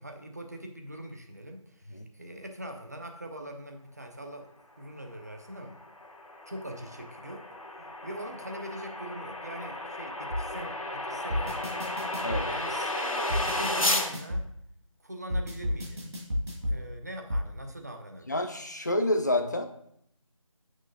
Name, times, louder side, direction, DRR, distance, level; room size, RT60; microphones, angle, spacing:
voice 1, 0.0-4.5 4.8-5.8 6.5-7.4 8.0-11.8 12.5-14.5 15.0-16.1 16.7-18.3, right 1 dB, 30° right, 4 dB, 0.5 m, -42 dB
sound 1, 5.4-14.1, left 1 dB, 75° left, 1.1 m, -33 dB
sound 2, 10.3-10.4 11.3-12.4 13.3-14.4 15.3-16.8 17.3-17.4, left 1 dB, 50° right, 1.7 m, -31 dB
voice 2, 18.3-19.6, left 1 dB, 30° left, 5 dB, 0.5 m, -28 dB
7.9 x 6.2 x 2.6 m, 0.71 s
figure-of-eight pair, 165°, 18 cm